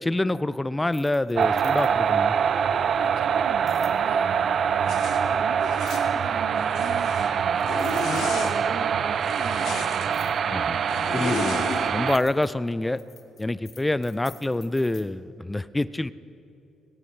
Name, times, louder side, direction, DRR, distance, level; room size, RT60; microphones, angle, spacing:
voice 1, 0.0-2.4 10.5-10.8 11.1-11.6 11.9-13.0 13.4-16.1, left 2 dB, 15° left, 16 dB, 0.4 m, -26 dB
sound 1, 0.8-2.1 3.7-4.0 5.8-6.2 7.2-7.3 7.6-8.7 10.1-10.4 11.2-15.0, left 6 dB, 50° left, 1.6 m, -50 dB
sound 2, 1.3-12.2, right 7 dB, 55° right, 0.4 m, -24 dB
voice 2, 2.9-4.6 4.8-10.4, right 7 dB, 85° right, 8 dB, 0.8 m, -40 dB
Zipper (clothing), 4.9-5.2 5.6-6.1 6.6-7.3 7.6-8.5 9.2-10.1 10.9-11.9, left 5 dB, 80° left, 1.8 m, -33 dB
20.5 x 17.0 x 3.3 m, 2.7 s
cardioid pair, 90°, 0 cm